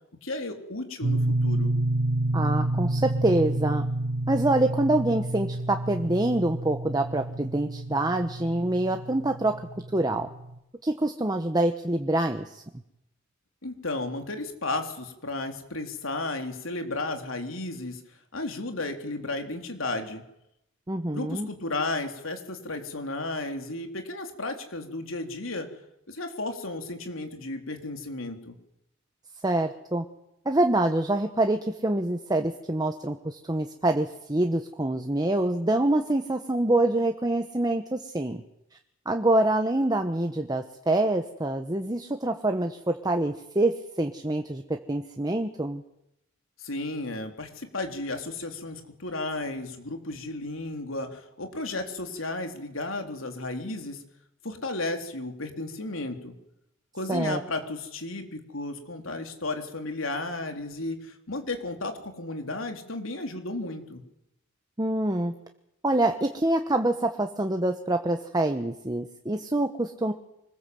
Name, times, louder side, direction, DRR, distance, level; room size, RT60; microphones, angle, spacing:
voice 1, 0.2-1.7 13.6-18.0 18.3-20.2 21.1-25.7 26.1-28.6 46.6-54.0 54.4-56.3 56.9-64.0, left 2 dB, 90° left, 5 dB, 3.6 m, -33 dB
sound 1, 1.0-10.6, right 2 dB, 90° right, 2.5 m, -29 dB
voice 2, 2.3-3.8 4.3-9.6 9.9-10.3 10.8-12.6 20.9-21.5 29.4-30.0 30.4-38.4 39.0-45.8 57.1-57.4 64.8-65.3 65.8-70.1, right 1 dB, 20° right, 5 dB, 1.2 m, -26 dB
25.0 x 21.0 x 7.9 m, 0.81 s
head